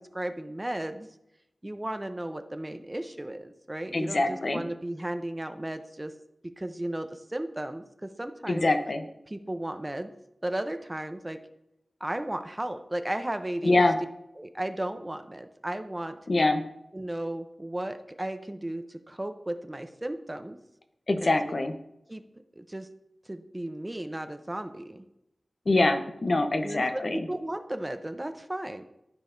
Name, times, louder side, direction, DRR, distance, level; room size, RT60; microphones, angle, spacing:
voice 1, 0.1-1.1 1.6-6.1 6.6-8.7 9.3-10.1 10.4-11.4 12.0-13.8 14.4-16.2 16.9-20.6 21.2-21.6 22.1-22.2 22.6-22.9 23.3-25.0 26.6-28.8, right 1 dB, 25° right, 8 dB, 0.6 m, -35 dB
voice 2, 3.9-4.6 8.5-9.0 13.6-13.9 16.3-16.6 21.1-21.7 25.7-27.3, left 2 dB, 55° left, 6 dB, 0.8 m, -24 dB
13.5 x 4.7 x 2.6 m, 0.86 s
wide cardioid pair, 55°, 0 cm